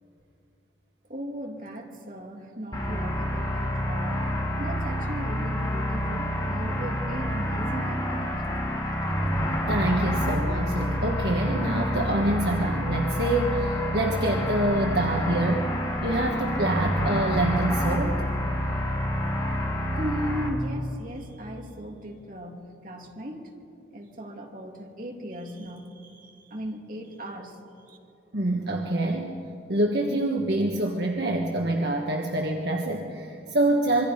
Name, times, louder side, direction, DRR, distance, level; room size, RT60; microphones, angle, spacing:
voice 1, 1.1-4.3 4.6-8.5 20.0-23.5 23.9-27.6 27.9-28.0, equal, 45° right, 0 dB, 2.9 m, -37 dB
sound 1, 2.7-20.5, equal, 20° left, 2.4 m, -28 dB
voice 2, 9.7-15.7 16.0-18.2 28.3-29.3 29.7-34.1, right 1 dB, 60° right, 1 dB, 1.5 m, -26 dB
26.5 x 23.5 x 5.2 m, 2.6 s
head